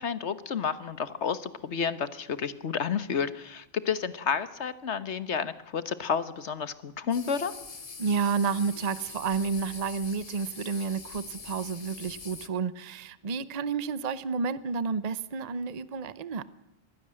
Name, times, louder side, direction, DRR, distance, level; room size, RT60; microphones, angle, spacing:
voice 1, 0.0-7.5, left 6 dB, 75° left, 14 dB, 1.5 m, -31 dB
sound 1, 7.1-12.5, left 5 dB, 35° left, 1.0 m, -44 dB
voice 2, 8.0-16.4, right 5 dB, 40° right, 16 dB, 0.8 m, -30 dB
22.0 x 16.0 x 7.6 m, 0.88 s
omnidirectional pair, 1.2 m